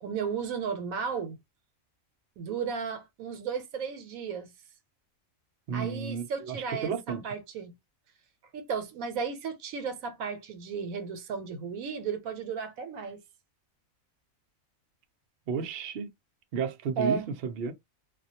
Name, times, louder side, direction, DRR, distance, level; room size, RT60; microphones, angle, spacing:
voice 1, 0.0-1.4 2.4-4.5 5.7-7.7 8.5-13.2 17.0-17.3, right 6 dB, 85° right, 1.1 m, -34 dB
voice 2, 5.7-7.2 15.5-16.1 16.5-17.7, right 6 dB, 60° right, 0.7 m, -33 dB
2.4 x 2.2 x 2.6 m
omnidirectional pair, 1.4 m